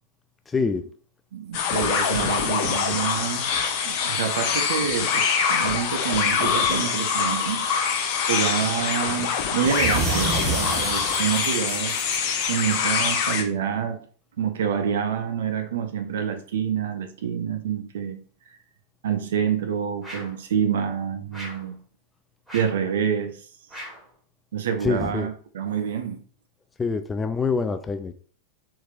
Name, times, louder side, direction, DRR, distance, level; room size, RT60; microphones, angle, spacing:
voice 1, 0.5-0.8 24.8-25.3 26.8-28.1, left 4 dB, 15° left, 0.4 m, -25 dB
voice 2, 1.3-3.6 3.8-5.2 5.5-7.7 8.3-12.0 12.5-14.1 14.4-18.2 19.0-21.8 22.5-23.5 24.5-26.2, right 8 dB, 60° right, 0.6 m, -27 dB
sound 1, 1.5-13.4, left 6 dB, 45° left, 0.7 m, -24 dB
sound 2, 9.6-12.9, right 4 dB, 25° right, 1.3 m, -30 dB
sound 3, 20.0-20.4 21.3-21.7 22.5-22.9 23.7-24.1, equal, 5° right, 2.0 m, -39 dB
4.4 x 3.8 x 2.5 m
figure-of-eight pair, 90°, 0 cm